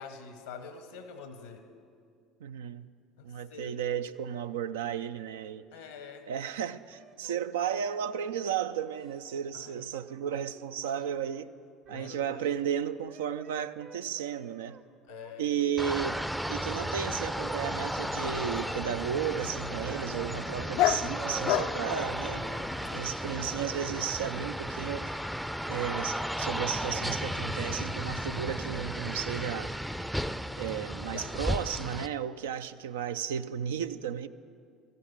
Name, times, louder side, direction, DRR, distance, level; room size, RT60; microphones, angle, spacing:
voice 1, 0.0-1.6 3.2-3.8 5.7-6.3 9.5-9.8 11.9-12.4 15.1-15.5 31.1-31.5, left 5 dB, 80° left, 0.8 m, -45 dB
voice 2, 2.4-2.9 3.2-5.7 6.3-11.5 11.9-14.8 15.4-16.2 16.5-22.5 22.9-25.3 25.7-29.7 30.6-34.3, right 8 dB, 75° right, 0.3 m, -34 dB
sound 1, 6.9-7.7 8.3-9.4 9.9-11.4 11.9-12.7 13.1-14.8 15.1-16.0 16.4-18.6 19.0-20.6 20.9-24.0, right 6 dB, 50° right, 1.0 m, -48 dB
sound 2, 15.8-32.1, equal, ahead, 0.4 m, -34 dB
Dog, 17.7-23.0, left 13 dB, 65° left, 0.3 m, -34 dB
13.5 x 8.3 x 9.1 m
figure-of-eight pair, 65°, 0 cm